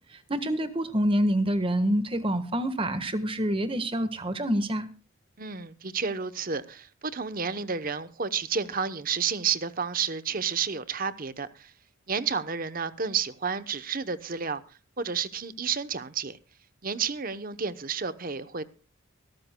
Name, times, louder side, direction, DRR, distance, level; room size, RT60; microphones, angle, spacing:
voice 1, 0.1-4.9, equal, 25° right, 1.4 m, -27 dB
voice 2, 5.4-11.7 12.1-14.6 15.0-16.4 16.8-18.6, right 6 dB, 45° right, 0.9 m, -31 dB
24.0 x 13.0 x 2.3 m
head